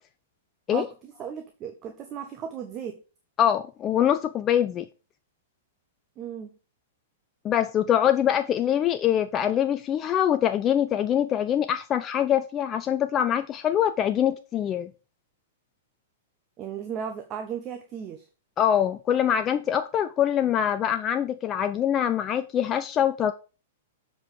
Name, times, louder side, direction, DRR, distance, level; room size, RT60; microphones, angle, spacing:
voice 1, 0.7-3.0 6.2-6.6 16.6-18.2, right 8 dB, 30° right, 1.0 m, -36 dB
voice 2, 3.4-4.9 7.4-14.9 18.6-23.3, left 10 dB, 25° left, 0.4 m, -24 dB
7.5 x 4.6 x 5.0 m
figure-of-eight pair, 105°, 0 cm